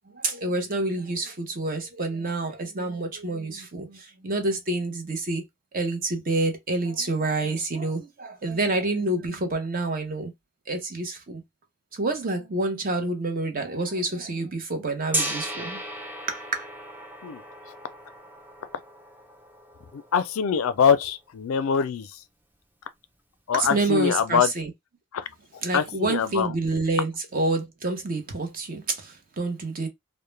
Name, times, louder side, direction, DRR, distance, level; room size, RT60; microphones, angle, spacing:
voice 1, 0.1-5.4 5.7-10.3 10.7-11.4 11.9-15.8 16.3-16.7 23.5-24.7 25.6-29.9, right 2 dB, 40° right, 0.7 m, -28 dB
Gong, 15.1-21.0, right 1 dB, 10° right, 0.4 m, -35 dB
voice 2, 19.9-22.1 23.5-24.5 25.1-25.2 25.7-26.5, left 7 dB, 70° left, 0.4 m, -23 dB
2.2 x 2.1 x 3.1 m
head